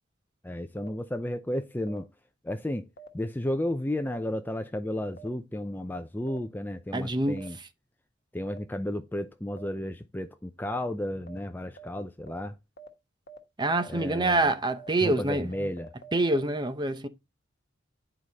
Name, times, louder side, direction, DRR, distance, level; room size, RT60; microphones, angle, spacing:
voice 1, 0.4-2.1 2.4-2.9 3.1-7.6 8.3-12.6 13.9-14.5 15.0-15.9, left 1 dB, 10° left, 0.5 m, -33 dB
sound 1, 0.8-0.9 1.9-2.0 3.0-3.1 4.1-4.2 5.2-5.3 6.3-6.4 7.4-7.5 8.5-8.6 9.6-9.7 10.7-10.8 11.3-11.4 11.8-11.9 12.3-12.4 12.8-12.9 13.3-13.4 13.8-13.9 14.3-14.4 14.8-14.9 15.3-16.4, right 4 dB, 60° left, 1.4 m, -46 dB
voice 2, 6.9-7.4 13.6-15.7 16.1-17.1, right 2 dB, 25° right, 0.8 m, -26 dB
9.3 x 4.9 x 4.0 m
head